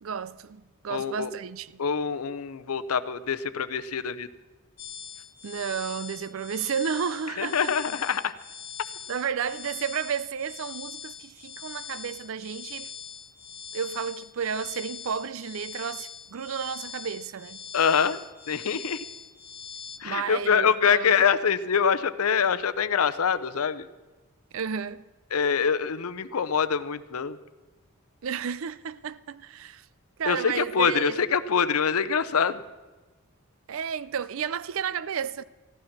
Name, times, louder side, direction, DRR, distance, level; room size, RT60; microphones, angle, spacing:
voice 1, 0.0-1.8 5.4-7.8 9.1-12.9 13.7-17.6 20.0-21.1 24.5-25.0 28.2-29.9 30.2-31.2 33.7-35.4, right 7 dB, 65° right, 0.4 m, -32 dB
voice 2, 0.9-1.3 1.8-4.3 7.4-8.3 17.7-18.2 18.5-19.0 20.0-23.9 25.3-27.4 30.3-32.6, left 6 dB, 80° left, 0.6 m, -25 dB
sound 1, 4.8-20.0, left 7 dB, 45° left, 1.1 m, -42 dB
14.0 x 11.5 x 5.9 m
head